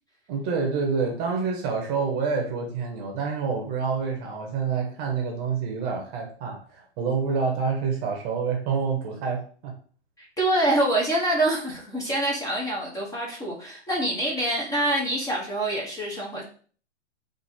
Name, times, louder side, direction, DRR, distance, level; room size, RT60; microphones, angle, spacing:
voice 1, 0.3-9.7, right 5 dB, 30° right, 2 dB, 1.0 m, -27 dB
voice 2, 10.2-16.4, right 1 dB, 10° left, -3 dB, 1.1 m, -26 dB
4.3 x 2.8 x 4.3 m, 0.43 s
hypercardioid pair, 130°, 35 cm